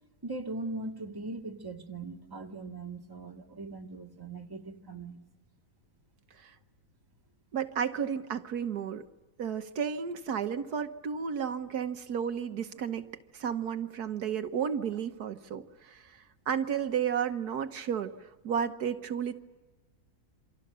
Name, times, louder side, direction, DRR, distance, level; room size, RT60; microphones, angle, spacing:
voice 1, 0.2-5.2, right 2 dB, 15° right, 2 dB, 1.9 m, -40 dB
voice 2, 7.5-9.1 9.4-13.1 13.3-19.4, right 7 dB, 75° right, 8 dB, 1.6 m, -33 dB
27.5 x 26.0 x 6.8 m, 1.2 s
omnidirectional pair, 1.7 m